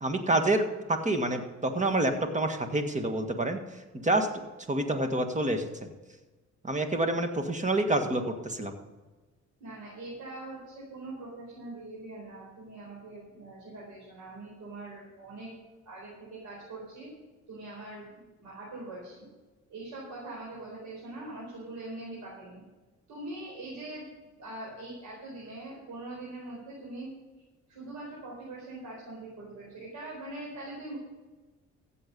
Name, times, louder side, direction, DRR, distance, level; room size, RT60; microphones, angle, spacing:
voice 1, 0.0-4.3 4.7-5.7 6.6-8.8, right 2 dB, 25° right, 6 dB, 1.8 m, -28 dB
voice 2, 9.6-15.5 15.8-17.1 17.5-19.2 19.7-22.6 23.1-24.1 24.4-27.1 27.7-31.0, right 2 dB, 75° right, -4 dB, 4.5 m, -42 dB
15.0 x 7.7 x 5.4 m, 1.2 s
cardioid pair, 90°, 30 cm